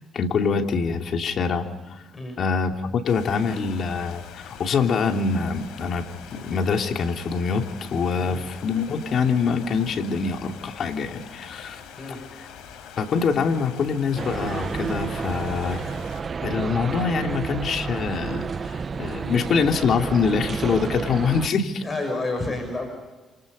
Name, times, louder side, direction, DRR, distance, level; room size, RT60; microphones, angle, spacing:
voice 1, 0.1-2.0 2.4-11.8 13.0-15.8 16.4-21.8, left 5 dB, 60° left, 3 dB, 3.0 m, -25 dB
sound 1, 3.1-16.2, left 7 dB, 85° left, 4.8 m, -43 dB
sound 2, 14.2-21.5, right 5 dB, 40° right, 0.8 m, -30 dB
voice 2, 21.8-22.9, left 2 dB, 30° left, 4 dB, 6.5 m, -30 dB
29.0 x 27.0 x 5.4 m, 1.2 s
cardioid pair, 90°, 0 cm